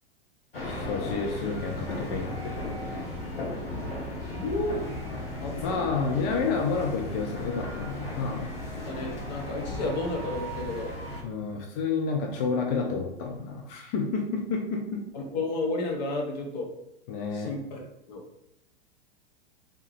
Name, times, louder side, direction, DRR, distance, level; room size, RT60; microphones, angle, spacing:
sound 1, 0.5-11.2, left 1 dB, 75° left, 1.1 m, -35 dB
voice 1, 0.6-2.6 5.5-8.5 9.6-9.8 11.2-15.0 17.1-17.5, left 4 dB, 25° left, 1 dB, 0.4 m, -30 dB
voice 2, 4.3-4.8 5.4-5.7 8.9-10.9 15.1-16.7 17.3-18.2, left 2 dB, 45° left, 1 dB, 0.9 m, -32 dB
3.4 x 2.7 x 3.2 m, 0.84 s
figure-of-eight pair, 95°, 29 cm